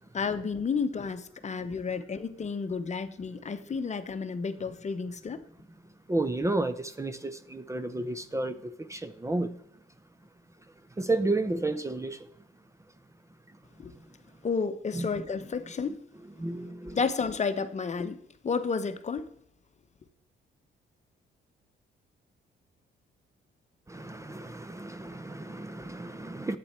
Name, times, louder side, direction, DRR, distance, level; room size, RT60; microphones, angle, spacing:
voice 1, 0.1-5.4 13.8-13.9 14.4-16.0 16.9-19.3, left 5 dB, 35° left, 0.9 m, -31 dB
voice 2, 6.1-9.5 11.0-12.3 14.9-15.1 16.4-17.0 23.9-26.6, right 2 dB, 15° right, 0.6 m, -32 dB
11.5 x 8.5 x 4.4 m
cardioid pair, 90°, 20 cm